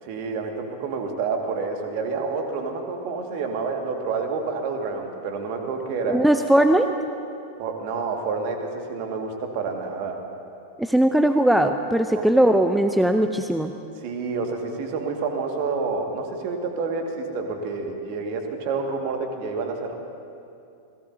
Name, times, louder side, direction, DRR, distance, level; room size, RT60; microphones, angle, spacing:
voice 1, 0.0-6.2 7.6-10.2 12.2-12.3 14.0-19.9, right 4 dB, 45° right, 3 dB, 1.9 m, -28 dB
voice 2, 6.1-6.9 10.8-13.7, right 1 dB, 5° right, 7 dB, 0.5 m, -19 dB
27.5 x 18.0 x 2.8 m, 2.6 s
figure-of-eight pair, 90°, 0 cm